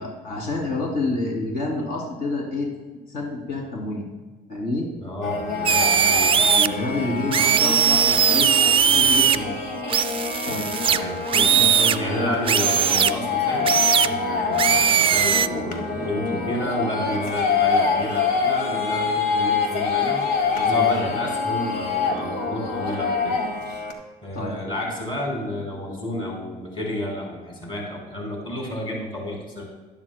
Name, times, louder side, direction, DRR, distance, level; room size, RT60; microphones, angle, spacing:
voice 1, 0.0-2.7 3.1-4.1 4.5-4.9 6.4-8.5 8.9-9.6 10.5-10.7 11.5-12.3 20.6-21.0 24.3-24.5, left 2 dB, 65° left, -2 dB, 2.7 m, -28 dB
voice 2, 5.0-6.3 10.9-11.6 12.0-20.2 20.7-23.4 24.2-29.6, left 1 dB, 30° left, -2 dB, 3.1 m, -31 dB
sound 1, 5.2-23.9, left 5 dB, 80° left, 1.4 m, -26 dB
sound 2, 5.7-6.7 7.3-9.4 9.9-12.0 12.5-13.1 13.7-14.1 14.6-15.5, right 8 dB, 30° right, 0.3 m, -19 dB
12.5 x 11.5 x 2.2 m, 1.3 s
cardioid pair, 110°, 17 cm